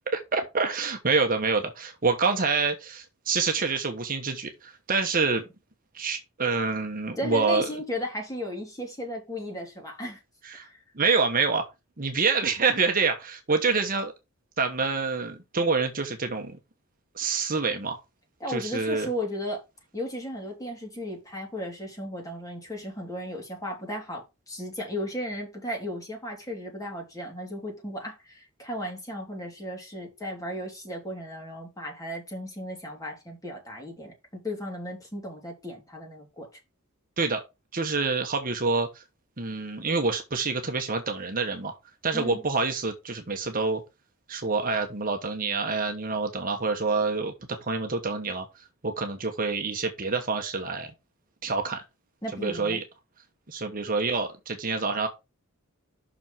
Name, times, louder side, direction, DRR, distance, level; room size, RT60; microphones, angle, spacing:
voice 1, 0.1-5.4 5.9-7.7 10.4-10.7 11.0-11.6 12.0-14.1 14.6-16.5 17.1-18.0 18.5-19.1 37.2-37.4 37.7-39.0 39.4-41.7 42.0-43.8 44.3-47.3 47.6-48.5 48.8-50.9 51.4-51.8 52.3-52.8 53.5-55.1, right 4 dB, 40° right, 1.1 m, -27 dB
voice 2, 7.2-10.2 10.6-10.8 18.4-19.6 19.9-36.5 42.1-42.4 52.2-52.8, equal, 15° left, 2.9 m, -35 dB
6.2 x 5.0 x 5.7 m
head